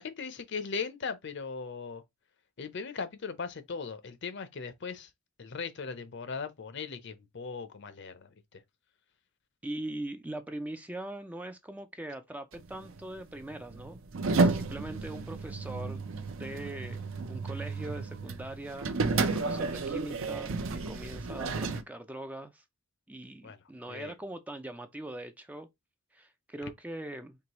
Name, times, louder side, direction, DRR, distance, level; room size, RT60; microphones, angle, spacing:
voice 1, 0.0-2.0 2.6-5.1 5.4-8.6 23.4-24.1 26.6-26.7, left 5 dB, 55° left, 0.6 m, -39 dB
voice 2, 9.6-14.0 14.4-16.0 16.4-18.9 19.3-22.6 23.1-25.7 26.1-27.4, right 1 dB, 5° right, 0.3 m, -41 dB
sound 1, 12.5-21.8, right 3 dB, 65° right, 0.6 m, -32 dB
4.6 x 2.9 x 2.9 m
head